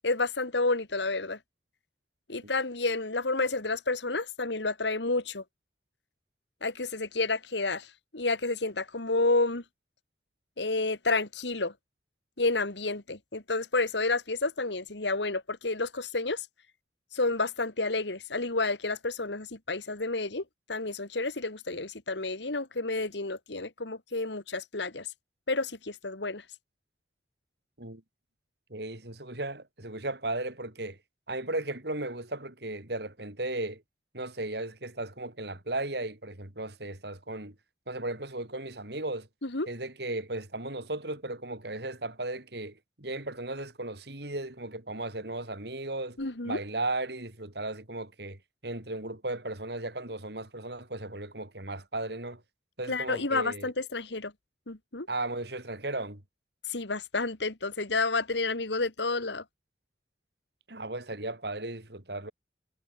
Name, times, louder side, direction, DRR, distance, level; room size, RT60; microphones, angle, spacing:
voice 1, 0.0-1.4 2.3-5.4 6.6-7.9 8.1-9.6 10.6-11.7 12.4-16.4 17.1-20.4 20.7-25.1 25.5-26.4 39.4-39.7 46.2-46.6 52.9-54.3 54.7-55.1 56.7-59.4, left 3 dB, 75° left, 2.1 m, -30 dB
voice 2, 28.7-31.0 31.3-33.8 34.1-37.6 37.9-39.3 39.7-46.2 46.4-52.4 52.8-53.7 55.1-56.2 60.7-62.3, right 2 dB, 60° right, 3.7 m, -36 dB
head